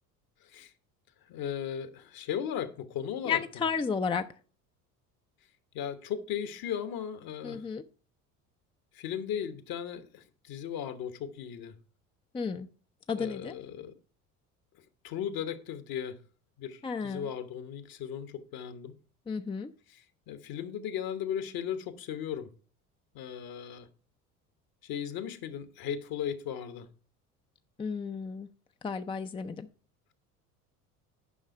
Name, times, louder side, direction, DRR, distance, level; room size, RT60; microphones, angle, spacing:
voice 1, 0.4-0.7 1.3-3.7 5.7-7.7 8.9-11.8 13.2-13.9 15.0-16.2 16.6-18.9 19.9-22.5 23.1-23.9 24.8-26.9, left 9 dB, 50° left, 1.3 m, -37 dB
voice 2, 3.3-4.2 7.4-7.8 12.3-12.7 13.1-13.5 16.8-17.2 19.3-19.7 27.8-28.5 28.8-29.7, left 6 dB, 10° left, 0.5 m, -32 dB
10.0 x 5.6 x 5.3 m
hypercardioid pair, 65°, 45 cm